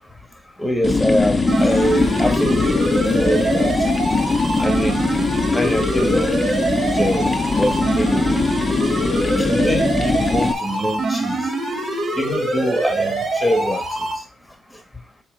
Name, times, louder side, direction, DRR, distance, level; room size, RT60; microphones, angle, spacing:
voice 1, 0.6-3.7 4.6-5.0 5.5-6.3 7.0-8.4 9.5-11.4 12.2-13.8, equal, 5° left, 1.7 m, -24 dB
sound 1, 0.8-10.5, left 3 dB, 25° left, 0.9 m, -21 dB
sound 2, 1.5-14.1, right 2 dB, 55° right, 2.9 m, -24 dB
7.2 x 3.2 x 5.1 m
cardioid pair, 90°, 0 cm